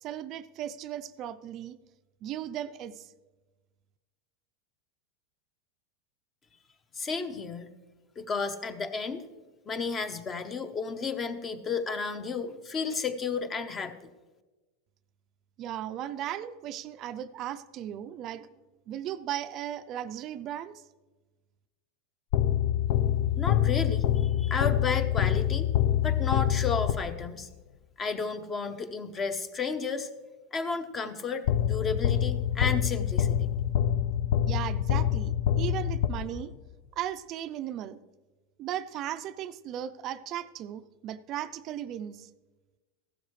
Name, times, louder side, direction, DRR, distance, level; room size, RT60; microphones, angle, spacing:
voice 1, 0.0-1.8 2.2-3.1 15.6-18.5 18.9-20.8 34.5-36.5 37.0-38.0 38.6-42.3, right 11 dB, 40° right, 11 dB, 0.4 m, -36 dB
voice 2, 6.9-7.7 8.2-9.2 9.7-13.9 23.4-25.7 26.0-27.5 28.0-30.1 30.5-33.5, left 5 dB, 25° left, 9 dB, 0.8 m, -32 dB
sound 1, 22.3-27.4 31.5-36.7, left 10 dB, 65° left, 0.4 m, -26 dB
15.0 x 12.0 x 3.2 m, 1.2 s
supercardioid pair, 130°, 0 cm